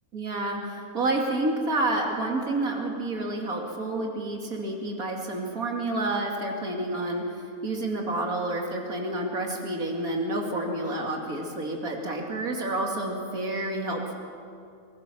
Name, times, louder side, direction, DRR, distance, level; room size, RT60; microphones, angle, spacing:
voice 1, 0.1-14.1, right 2 dB, 75° right, 1 dB, 2.9 m, -29 dB
24.0 x 19.5 x 6.2 m, 2.3 s
omnidirectional pair, 1.5 m